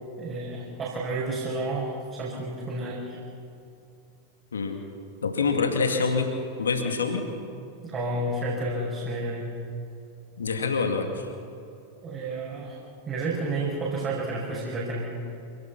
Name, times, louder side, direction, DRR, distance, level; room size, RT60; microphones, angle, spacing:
voice 1, 0.2-3.2 7.8-9.5 12.0-12.8 13.0-15.2, right 2 dB, 25° right, -5 dB, 6.1 m, -31 dB
voice 2, 5.2-7.3 10.4-11.3, left 4 dB, 70° left, 4 dB, 2.3 m, -26 dB
27.5 x 18.5 x 6.0 m, 2.6 s
figure-of-eight pair, 90°, 0 cm